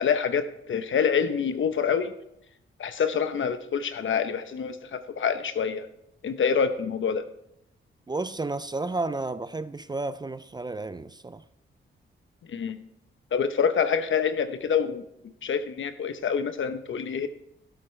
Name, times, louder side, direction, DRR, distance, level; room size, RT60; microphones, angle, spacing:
voice 1, 0.0-2.1 2.8-5.9 6.2-7.2 12.5-12.8 13.3-15.0 15.4-17.3, left 7 dB, 65° left, 0.9 m, -26 dB
voice 2, 8.1-11.4, right 3 dB, 20° right, 0.4 m, -32 dB
13.0 x 11.5 x 3.3 m
cardioid pair, 95°, 21 cm